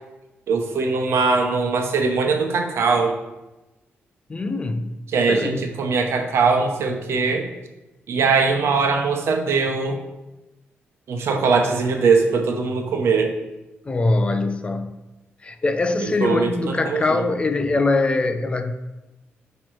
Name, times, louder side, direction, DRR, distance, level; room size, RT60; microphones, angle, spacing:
voice 1, 0.5-3.1 5.1-7.5 8.1-10.0 11.1-13.3 16.0-17.3, right 4 dB, 75° right, 4 dB, 0.9 m, -21 dB
voice 2, 4.3-4.9 5.3-5.6 13.9-14.9 15.4-18.7, left 2 dB, 25° left, 9 dB, 0.5 m, -22 dB
8.6 x 3.1 x 4.6 m, 1.0 s
cardioid pair, 115°, 4 cm